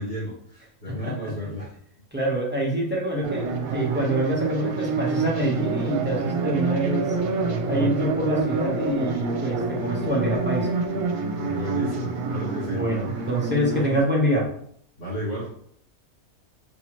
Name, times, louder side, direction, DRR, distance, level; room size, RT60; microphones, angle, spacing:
voice 1, 0.0-1.7 11.4-12.8 15.0-15.5, equal, 80° left, -10 dB, 2.4 m, -32 dB
voice 2, 0.9-1.4 2.1-7.1 7.7-10.7 12.7-14.5, equal, 10° right, -4 dB, 0.8 m, -26 dB
sound 1, 3.2-14.0, right 4 dB, 75° right, 1.1 m, -27 dB
5.4 x 2.8 x 3.1 m, 0.64 s
omnidirectional pair, 1.6 m